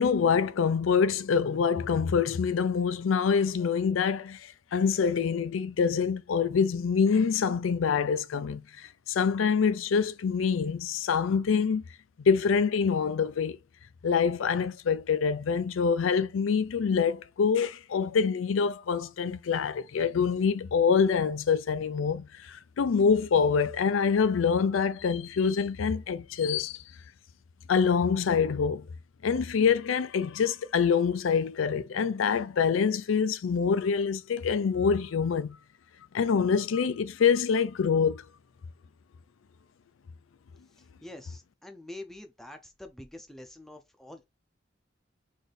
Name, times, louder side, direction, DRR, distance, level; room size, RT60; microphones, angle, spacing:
voice 1, 0.0-11.8 12.2-13.6 14.0-26.8 27.7-28.9 29.2-35.6 36.1-38.2, left 6 dB, 90° left, 0.4 m, -25 dB
voice 2, 41.0-44.2, left 1 dB, ahead, 0.5 m, -46 dB
4.1 x 2.6 x 3.3 m
head